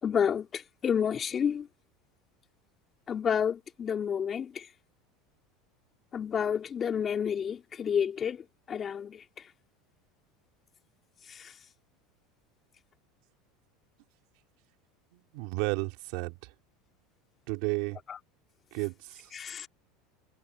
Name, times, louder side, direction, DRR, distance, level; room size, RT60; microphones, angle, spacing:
voice 1, 0.0-1.7 3.1-4.7 6.1-9.2 11.3-11.5 18.1-18.2 19.3-19.7, left 7 dB, 30° left, 4.0 m, -30 dB
voice 2, 15.1-16.4 17.5-18.0 18.7-19.3, right 26 dB, 70° right, 2.8 m, -33 dB
supercardioid pair, 120°, 0 cm